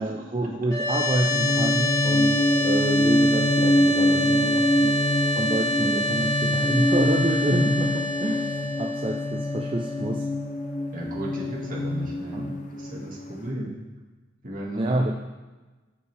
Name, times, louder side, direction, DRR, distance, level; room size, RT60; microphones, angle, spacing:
voice 1, 0.0-4.4 4.7-4.9 5.4-10.3 12.3-12.6 14.8-15.1, right 1 dB, 25° right, 0 dB, 0.5 m, -27 dB
sound 1, 0.7-11.8, equal, 20° left, 1.8 m, -28 dB
sound 2, 1.3-13.3, left 1 dB, 40° left, 0.6 m, -25 dB
voice 2, 3.7-4.7 10.9-13.8 14.4-15.0, right 1 dB, 45° right, -2 dB, 1.8 m, -35 dB
14.0 x 5.4 x 3.3 m, 1.2 s
head